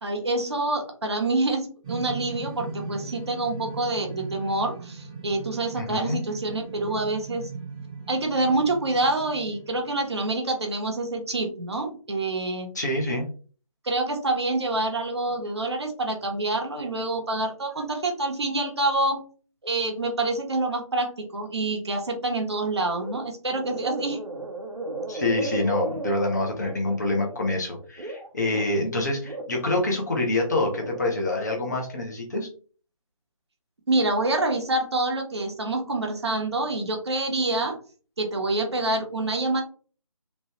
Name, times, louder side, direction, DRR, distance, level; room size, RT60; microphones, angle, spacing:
voice 1, 0.0-7.5 8.1-12.7 13.8-19.2 19.6-24.2 33.9-37.8 38.2-39.6, right 2 dB, 50° right, 3 dB, 0.8 m, -27 dB
sound 1, 1.8-10.3, right 4 dB, 10° right, 0.8 m, -39 dB
voice 2, 5.8-6.2 12.7-13.3 25.1-32.5, left 2 dB, 30° left, 1 dB, 0.6 m, -26 dB
sound 2, 22.9-23.2 23.5-28.8 29.2-31.0 31.4-31.8, right 2 dB, 85° right, 0.9 m, -35 dB
3.0 x 2.2 x 2.9 m, 0.39 s
figure-of-eight pair, 155°, 18 cm